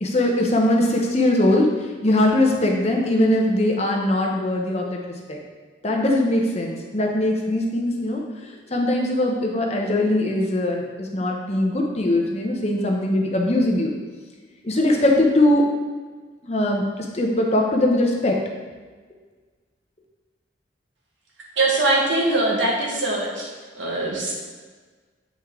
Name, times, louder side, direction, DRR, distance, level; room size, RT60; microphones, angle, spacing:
voice 1, 0.0-1.7 2.0-5.4 5.8-8.2 8.7-13.9 14.6-15.6 16.4-18.4, left 1 dB, 35° left, 0 dB, 1.0 m, -21 dB
voice 2, 21.6-23.5 23.7-24.3, right 2 dB, 90° right, -2 dB, 1.7 m, -22 dB
8.1 x 5.3 x 3.8 m, 1.4 s
head